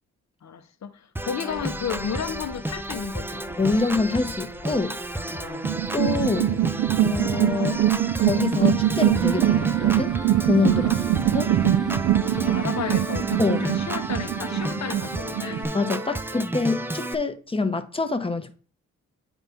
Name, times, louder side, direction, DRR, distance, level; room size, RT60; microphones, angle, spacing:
voice 1, 0.4-3.5 5.3-5.7 10.7-11.1 12.2-15.7, left 7 dB, 60° left, 0.8 m, -33 dB
Organ, 1.2-17.2, right 1 dB, 5° right, 0.5 m, -32 dB
sound 1, 1.5-7.1, left 2 dB, 40° left, 1.5 m, -43 dB
voice 2, 3.6-5.0 5.9-6.5 7.0-7.9 8.2-10.1 10.5-10.9 11.3-11.5 13.4-13.7 15.7-18.6, left 4 dB, 20° left, 0.9 m, -25 dB
sound 2, 5.6-15.6, right 12 dB, 70° right, 0.5 m, -23 dB
9.0 x 4.1 x 3.5 m
cardioid pair, 75°, 31 cm